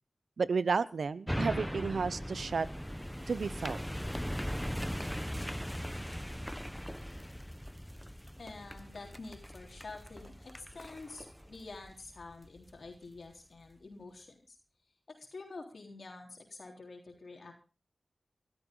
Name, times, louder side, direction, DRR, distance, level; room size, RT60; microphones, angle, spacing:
voice 1, 0.4-2.7 3.3-3.8, right 5 dB, 85° right, 17 dB, 0.7 m, -32 dB
sound 1, 1.3-12.7 13.2-13.3, equal, ahead, 0.9 m, -39 dB
voice 2, 8.3-14.6 15.1-17.5, left 3 dB, 70° left, 2 dB, 3.6 m, -48 dB
20.0 x 13.0 x 3.8 m, 0.34 s
cardioid pair, 45°, 0 cm